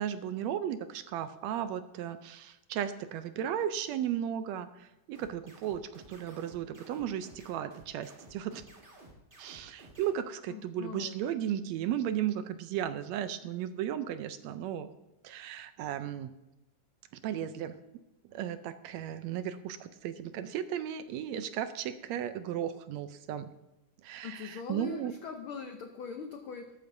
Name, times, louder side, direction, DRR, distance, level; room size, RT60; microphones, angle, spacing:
voice 1, 0.0-8.6 9.4-14.9 15.2-16.3 17.2-17.8 18.3-23.5 24.0-25.2, right 10 dB, 75° right, 11 dB, 1.8 m, -35 dB
sound 1, 5.1-10.1, right 2 dB, 25° right, 1.3 m, -54 dB
voice 2, 10.5-11.2 24.2-26.7, left 6 dB, 85° left, 6 dB, 1.1 m, -42 dB
13.5 x 13.0 x 2.6 m, 1.0 s
omnidirectional pair, 3.3 m